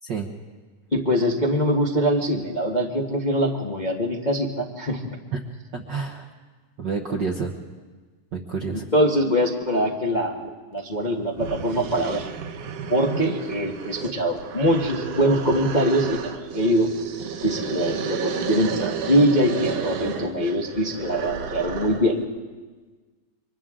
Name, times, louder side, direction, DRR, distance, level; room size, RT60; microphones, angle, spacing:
voice 1, 0.9-5.0 8.9-12.2 12.9-16.9 17.4-22.2, equal, 60° left, -1 dB, 0.4 m, -23 dB
voice 2, 5.7-6.3 6.8-7.5 8.3-8.8, right 5 dB, 60° right, 1 dB, 1.1 m, -29 dB
sound 1, 11.0-11.1 11.4-22.2, right 7 dB, 80° right, 2.7 m, -32 dB
29.5 x 24.5 x 3.8 m, 1.4 s
omnidirectional pair, 3.6 m